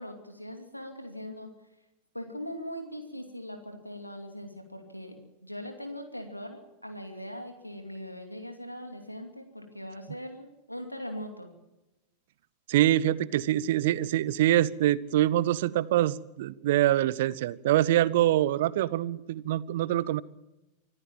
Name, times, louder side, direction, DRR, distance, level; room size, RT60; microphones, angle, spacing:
voice 1, 0.0-1.5 2.1-5.2 5.4-11.5, equal, 90° left, 5 dB, 2.6 m, -40 dB
voice 2, 12.7-20.2, right 13 dB, 55° right, 20 dB, 0.8 m, -25 dB
25.5 x 14.5 x 7.3 m, 0.97 s
figure-of-eight pair, 90°, 0 cm